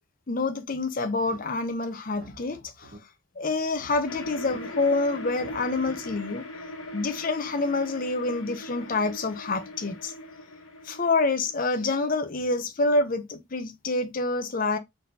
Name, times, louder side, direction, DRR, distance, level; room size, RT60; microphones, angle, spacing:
voice 1, 0.3-3.0 3.4-6.4 6.9-10.1 10.8-14.8, left 3 dB, 40° left, 0.6 m, -27 dB
sound 1, 1.2-1.7 2.0-3.0 3.6-4.6 5.2-6.2, right 1 dB, 65° right, 1.9 m, -49 dB
sound 2, 4.1-12.3, left 1 dB, 80° left, 1.2 m, -40 dB
4.1 x 3.9 x 2.6 m
head